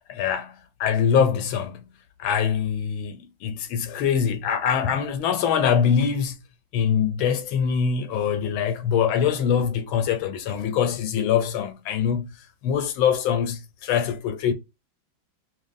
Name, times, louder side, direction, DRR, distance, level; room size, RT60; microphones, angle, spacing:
voice 1, 0.1-1.9 2.2-6.4 6.7-12.3 12.6-14.5, left 7 dB, 85° left, 1.4 m, -23 dB
6.1 x 2.1 x 2.5 m
omnidirectional pair, 2.2 m